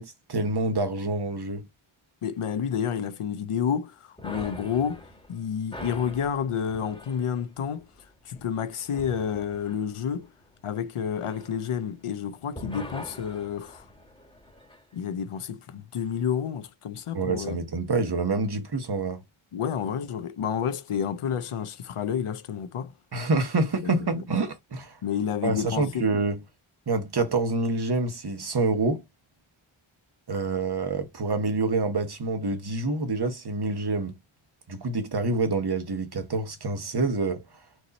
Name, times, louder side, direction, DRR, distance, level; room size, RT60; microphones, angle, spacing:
voice 1, 0.0-1.7 17.1-19.2 23.1-25.0 25.4-26.4 26.9-29.0 30.3-34.1 34.7-37.4, right 3 dB, 50° right, 1.1 m, -27 dB
voice 2, 2.2-7.9 8.2-10.3 10.6-13.8 14.9-17.6 19.5-22.9 23.8-24.1 25.0-26.1, left 8 dB, 85° left, 0.7 m, -30 dB
sound 1, 4.2-12.2 12.5-14.8, left 1 dB, 10° left, 1.3 m, -44 dB
4.6 x 2.7 x 4.1 m
wide cardioid pair, 65°, 50 cm